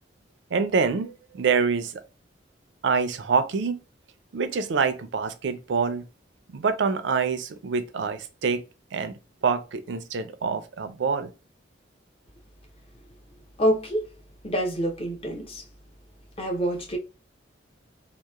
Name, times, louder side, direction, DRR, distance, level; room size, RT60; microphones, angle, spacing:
voice 1, 0.5-1.9 2.8-3.8 4.3-6.0 6.5-8.6 8.9-9.2 9.4-11.3, right 5 dB, 75° right, 0.4 m, -26 dB
voice 2, 13.6-14.0 14.4-15.6 16.4-17.0, equal, 30° left, 0.6 m, -26 dB
2.9 x 2.0 x 2.3 m
head